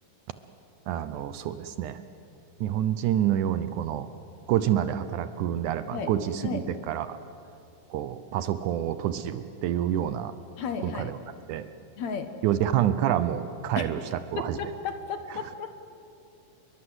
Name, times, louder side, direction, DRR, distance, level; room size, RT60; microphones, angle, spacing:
voice 1, 0.9-2.0 2.6-4.1 4.5-7.2 7.9-10.3 10.8-11.2 11.5-11.7 12.4-14.7, right 11 dB, 75° right, 12 dB, 2.1 m, -28 dB
voice 2, 10.6-11.1 12.0-12.3 13.8-13.9 14.4-15.8, left 6 dB, 60° left, 8 dB, 2.3 m, -33 dB
28.5 x 22.5 x 7.9 m, 2.6 s
omnidirectional pair, 3.9 m